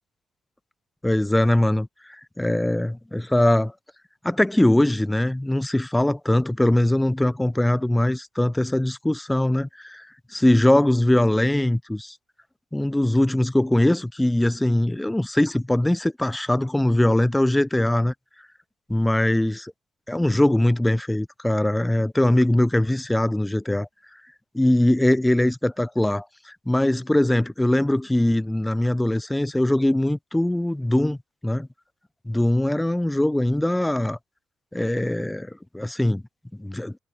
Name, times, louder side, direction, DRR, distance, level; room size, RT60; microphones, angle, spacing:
voice 1, 1.0-3.7 4.2-10.1 10.3-12.2 12.7-18.1 18.9-19.6 20.1-23.9 24.5-31.2 31.4-31.7 32.2-34.2 34.7-36.2 36.6-37.0, left 1 dB, 10° left, 1.4 m, -21 dB
cardioid pair, 90°, 0 cm